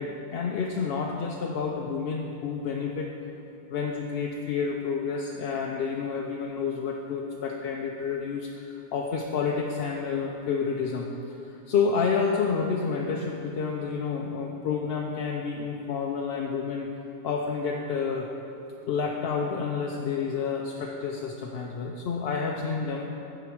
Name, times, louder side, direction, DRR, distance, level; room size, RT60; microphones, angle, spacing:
voice 1, 0.0-3.1 3.7-16.9 17.2-18.3 18.9-23.1, left 5 dB, 65° left, 0 dB, 0.8 m, -29 dB
9.2 x 4.7 x 6.0 m, 2.9 s
omnidirectional pair, 1.2 m